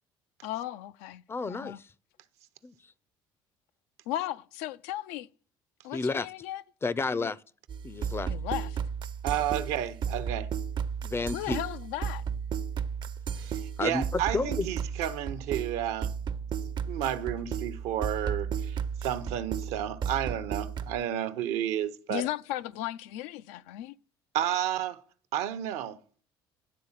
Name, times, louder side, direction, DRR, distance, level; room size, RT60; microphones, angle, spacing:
voice 1, 0.4-1.8 4.1-5.3 5.8-6.6 7.1-7.3 8.3-8.8 11.3-12.2 22.1-23.9, left 14 dB, 80° left, 0.4 m, -36 dB
voice 2, 1.3-1.8 2.6-2.7 5.9-6.3 6.8-7.4 7.8-8.3 11.0-11.6 13.8-14.7, left 3 dB, 20° left, 0.5 m, -31 dB
sound 1, 7.7-21.0, right 7 dB, 45° right, 0.5 m, -34 dB
voice 3, 9.2-10.5 13.4-16.1 16.9-22.2 24.3-25.0 25.3-26.0, right 11 dB, 75° right, 0.8 m, -31 dB
11.0 x 3.7 x 7.2 m
supercardioid pair, 80°, 11 cm